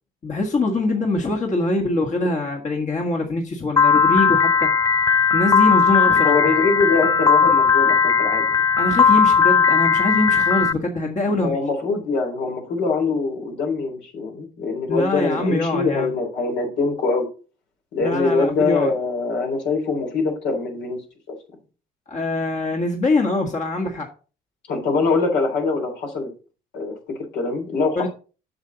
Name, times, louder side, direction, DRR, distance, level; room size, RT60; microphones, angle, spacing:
voice 1, 0.2-4.7 5.3-6.6 8.8-11.6 14.9-16.1 18.0-18.9 22.1-24.1 27.9-28.1, left 2 dB, 40° left, 1 dB, 1.7 m, -23 dB
Piano, 3.8-10.7, left 6 dB, 20° left, 0.4 m, -17 dB
voice 2, 6.2-8.5 11.2-17.3 17.9-21.0 24.7-26.3 26.7-28.1, left 4 dB, 75° left, 1 dB, 3.6 m, -23 dB
7.9 x 6.8 x 4.0 m, 0.36 s
supercardioid pair, 70°, 19 cm